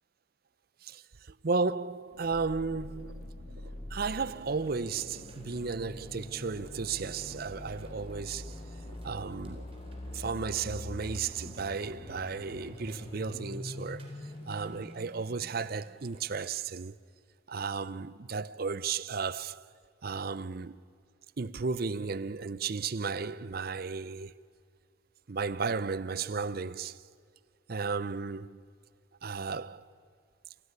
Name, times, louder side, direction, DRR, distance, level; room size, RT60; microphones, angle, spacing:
voice 1, 0.8-3.3 3.9-8.6 9.0-9.6 10.1-14.1 14.5-16.9 17.5-19.6 20.0-20.8 21.4-24.3 25.3-27.0 27.7-28.6 29.2-29.9, right 5 dB, 50° right, 0.6 m, -34 dB
sound 1, 2.1-13.4, right 1 dB, 75° right, 2.4 m, -54 dB
sound 2, 2.3-16.1, left 1 dB, 25° left, 0.8 m, -44 dB
sound 3, 3.9-16.6, right 1 dB, 30° right, 4.0 m, -60 dB
28.0 x 16.5 x 9.6 m
head